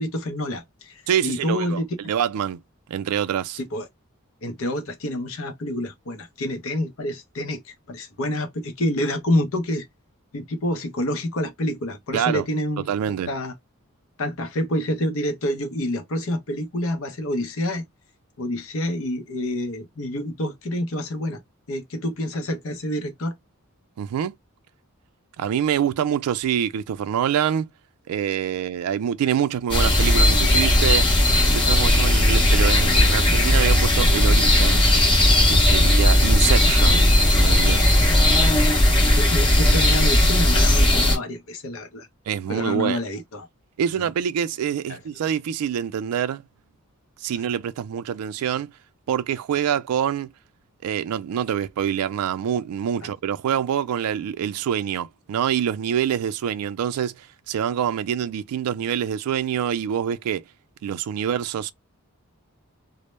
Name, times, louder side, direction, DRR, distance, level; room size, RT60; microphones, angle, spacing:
voice 1, 0.0-1.9 3.6-3.9 4.4-9.9 10.3-13.5 14.2-17.8 18.4-21.4 21.7-23.3 35.8-35.9 39.2-42.1 42.5-43.5 44.9-45.0 53.0-53.1, left 1 dB, 70° left, 0.6 m, -28 dB
voice 2, 1.1-2.6 2.9-3.6 12.1-12.4 12.9-13.3 24.0-24.3 25.4-27.7 28.1-31.1 31.5-34.9 35.5-37.9 42.3-43.0 43.8-46.4 47.2-48.7 49.1-50.3 50.8-60.4 60.8-61.7, right 9 dB, 90° right, 0.3 m, -25 dB
sound 1, 29.7-41.2, left 1 dB, 20° left, 0.6 m, -17 dB
2.1 x 2.1 x 2.9 m
head